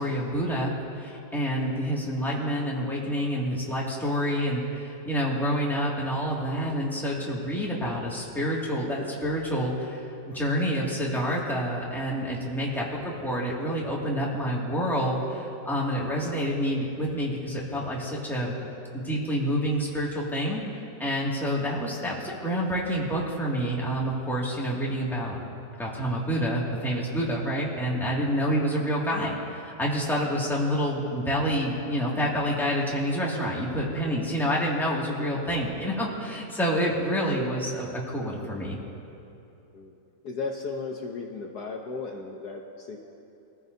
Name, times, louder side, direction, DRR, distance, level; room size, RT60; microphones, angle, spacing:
voice 1, 0.0-18.5 18.9-25.4 25.8-38.8, equal, ahead, -5 dB, 1.9 m, -28 dB
voice 2, 40.2-43.0, left 4 dB, 60° left, 0 dB, 1.3 m, -35 dB
22.5 x 14.5 x 2.7 m, 2.9 s
omnidirectional pair, 2.1 m